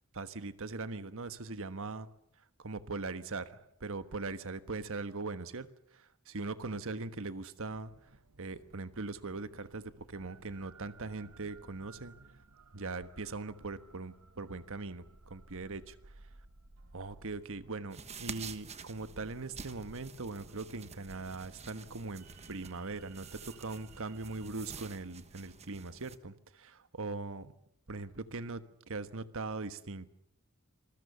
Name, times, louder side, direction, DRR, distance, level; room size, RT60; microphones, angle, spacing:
voice 1, 0.1-2.1 2.4-8.1 8.4-12.2 12.7-16.3 16.9-27.5 27.9-30.1, right 3 dB, 65° right, 12 dB, 1.3 m, -41 dB
sound 1, 7.7-24.5, right 3 dB, 85° right, 1.3 m, -59 dB
sound 2, 17.9-26.2, right 5 dB, 30° right, 1.3 m, -49 dB
26.0 x 20.5 x 6.9 m, 0.74 s
head